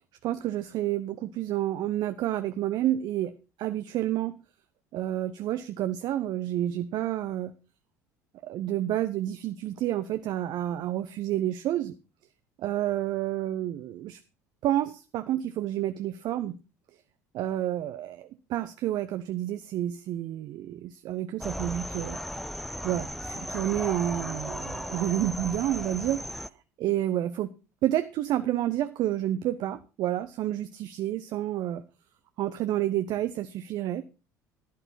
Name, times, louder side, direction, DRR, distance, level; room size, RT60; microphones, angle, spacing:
voice 1, 0.2-3.3 3.6-4.3 4.9-7.5 8.4-12.0 12.6-14.2 14.6-16.6 17.3-22.2 22.8-26.2 26.8-27.5 27.8-31.8 32.4-34.0, right 12 dB, 50° right, 10 dB, 0.7 m, -29 dB
sound 1, 21.4-26.5, equal, ahead, 0.5 m, -36 dB
11.5 x 11.0 x 4.1 m, 0.32 s
figure-of-eight pair, 65°, 9 cm